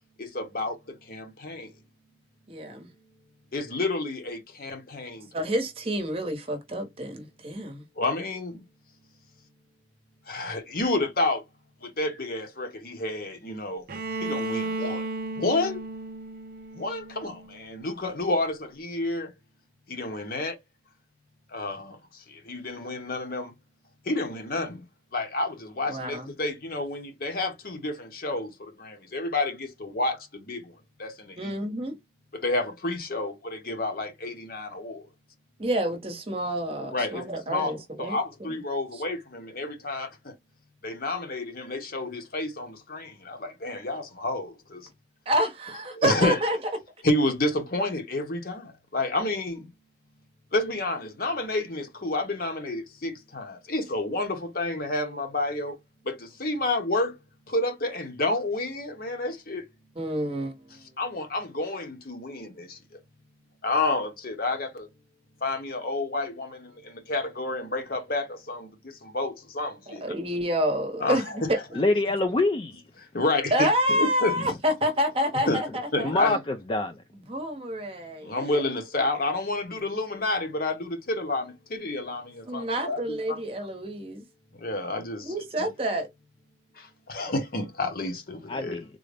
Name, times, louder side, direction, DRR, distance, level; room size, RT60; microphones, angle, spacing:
voice 1, 0.2-1.7 3.5-5.4 8.0-8.6 10.3-11.4 11.8-13.8 14.2-15.1 15.4-15.8 16.7-19.3 19.9-20.6 21.5-22.0 22.3-23.5 24.1-24.8 25.1-30.7 31.0-31.6 32.3-35.0 36.9-40.3 40.8-44.8 45.9-46.4 47.0-49.7 50.5-55.8 56.0-57.2 57.5-59.6 60.7-62.8 63.6-64.9 65.4-70.1 71.0-71.6 73.1-74.4 75.4-75.6 75.9-76.4 78.2-83.4 84.6-85.7 86.8-88.8, left 2 dB, 50° left, 0.9 m, -30 dB
voice 2, 2.5-2.9 5.3-7.8 22.8-22.9 25.9-26.3 31.4-31.9 35.6-38.6 38.9-39.0 45.3-46.6 60.0-60.6 69.9-71.2 71.5-71.6 73.5-76.4 77.1-78.6 82.5-84.2 85.2-86.1, equal, 30° right, 0.9 m, -28 dB
Bowed string instrument, 13.9-17.7, right 2 dB, 50° right, 0.5 m, -34 dB
voice 3, 71.7-72.8 76.0-76.9 88.5-88.9, left 2 dB, 30° left, 0.4 m, -25 dB
3.8 x 2.0 x 3.3 m
head